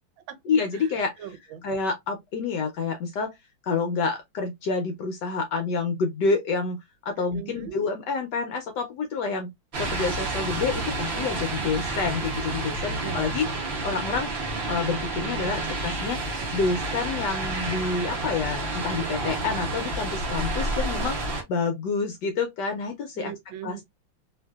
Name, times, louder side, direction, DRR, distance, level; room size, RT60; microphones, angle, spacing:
voice 1, 0.5-1.1 1.6-3.3 3.6-9.5 9.8-13.5 13.8-14.3 14.7-23.3 23.6-23.8, left 4 dB, 70° left, 1.1 m, -28 dB
voice 2, 1.2-1.6 7.2-7.8 13.0-13.3 23.2-23.8, right 10 dB, 80° right, 1.4 m, -39 dB
sound 1, 9.7-21.4, right 2 dB, 45° right, 0.9 m, -30 dB
3.1 x 2.6 x 2.3 m
omnidirectional pair, 2.1 m